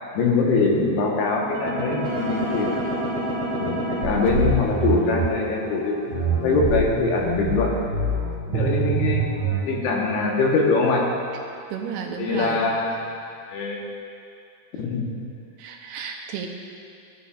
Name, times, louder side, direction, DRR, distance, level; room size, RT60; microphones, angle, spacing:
voice 1, 0.1-2.8 3.6-7.7 8.5-9.3 9.7-11.1 12.2-13.1 13.5-13.8 14.8-15.1, left 3 dB, 75° left, -2 dB, 3.3 m, -23 dB
sound 1, 1.5-5.3 6.1-9.7, right 3 dB, 50° right, 2.5 m, -26 dB
sound 2, 2.0-7.0, left 2 dB, 15° right, 1.8 m, -36 dB
voice 2, 11.7-12.7 15.6-16.5, right 7 dB, 80° right, 2 dB, 2.7 m, -32 dB
17.5 x 9.9 x 2.5 m, 2.5 s
omnidirectional pair, 4.8 m